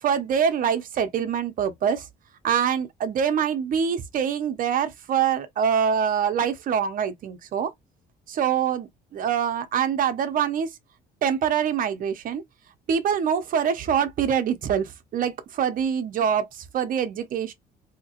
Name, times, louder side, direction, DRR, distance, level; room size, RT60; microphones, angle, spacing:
voice 1, 0.0-2.1 2.4-7.7 8.3-10.7 11.2-12.4 12.9-17.5, right 8 dB, 55° right, 0.9 m, -24 dB
3.5 x 2.9 x 2.9 m
cardioid pair, 110°, 17 cm